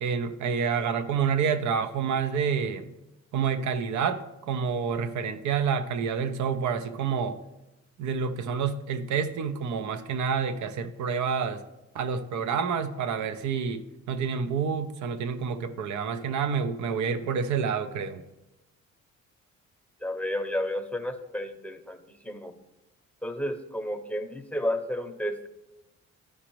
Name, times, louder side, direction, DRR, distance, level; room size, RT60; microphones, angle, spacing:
voice 1, 0.0-2.9 3.3-7.4 8.0-11.6 11.9-18.2, right 6 dB, 70° right, 11 dB, 0.7 m, -28 dB
voice 2, 20.0-22.0 22.2-22.5 23.2-25.5, left 1 dB, 5° left, 6 dB, 0.7 m, -31 dB
12.5 x 5.0 x 3.0 m, 0.96 s
cardioid pair, 90°, 30 cm